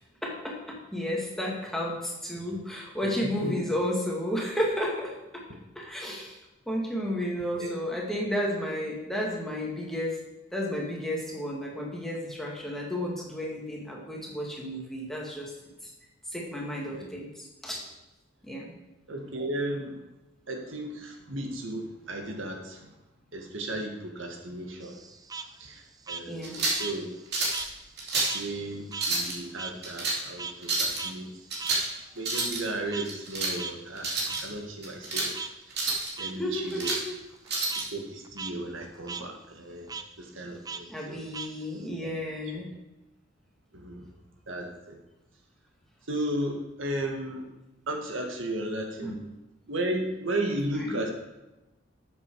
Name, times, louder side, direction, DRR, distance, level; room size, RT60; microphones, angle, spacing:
voice 1, 0.2-5.4 5.8-6.4 6.7-10.2 10.5-15.5 16.3-17.8 18.4-18.7 26.3-26.7 36.4-37.2 40.9-42.7 49.0-49.2 50.7-51.0, equal, ahead, -3 dB, 2.1 m, -32 dB
voice 2, 19.1-20.1 20.5-23.0 23.3-25.0 25.6-27.1 28.3-31.3 31.6-31.7 32.1-35.3 35.7-35.8 36.2-36.9 37.8-39.9 40.2-41.2 42.0-42.1 42.5-42.6 43.7-44.1 44.5-45.0 46.1-47.5 47.9-49.2 49.7-51.1, right 1 dB, 70° right, 3 dB, 1.7 m, -35 dB
Frog, 24.8-27.7 28.0-32.7 32.9-33.1 33.6-33.7 34.3-34.4 35.3-35.5 36.0-36.3 36.8-37.0 37.3-37.8 38.2-38.5 38.8-39.2 39.9-40.0 40.7-41.9, right 5 dB, 20° right, 0.5 m, -39 dB
sound 1, 26.4-26.9 27.3-27.6 28.0-28.4 28.9-29.3 29.8-30.2 30.6-31.0 31.5-31.9 32.2-32.6 33.1-33.5 34.0-34.4 34.8-35.3 35.7-36.1 36.5-37.0 37.5-37.8, right 3 dB, 50° right, 2.9 m, -29 dB
12.5 x 7.4 x 4.8 m, 1.0 s
head